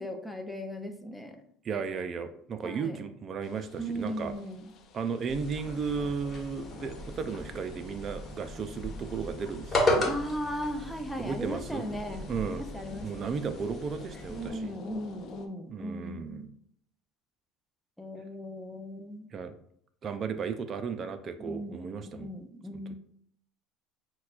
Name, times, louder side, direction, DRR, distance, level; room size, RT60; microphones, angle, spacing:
voice 1, 0.0-1.4 2.6-3.0 3.8-4.7 10.1-12.3 12.7-13.1 14.3-16.5 18.0-19.3 21.4-22.9, equal, 5° left, 5 dB, 0.6 m, -37 dB
voice 2, 1.6-4.3 4.9-10.2 11.2-11.9 12.2-12.6 13.0-14.7 15.7-16.5 19.3-19.5 20.0-22.3 22.7-22.8, right 5 dB, 40° right, 9 dB, 0.3 m, -35 dB
sound 1, 3.4-15.5, left 5 dB, 50° left, 0.5 m, -50 dB
sound 2, 5.3-14.5, left 1 dB, 30° left, 1.2 m, -35 dB
5.7 x 2.2 x 2.4 m, 0.67 s
supercardioid pair, 95°, 0 cm